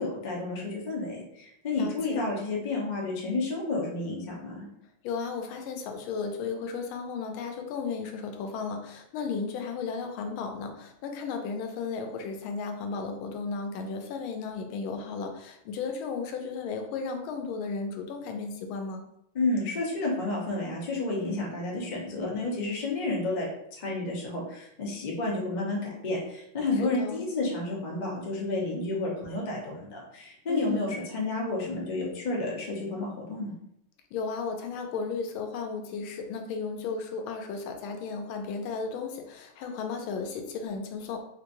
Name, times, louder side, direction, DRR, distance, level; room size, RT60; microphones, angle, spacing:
voice 1, 0.0-4.6 19.3-33.5, left 2 dB, 60° left, -3 dB, 0.4 m, -31 dB
voice 2, 1.8-2.3 5.0-19.0 26.8-27.3 30.5-31.0 34.1-41.2, left 5 dB, 80° left, 4 dB, 1.4 m, -34 dB
3.6 x 2.9 x 2.6 m, 0.76 s
omnidirectional pair, 2.3 m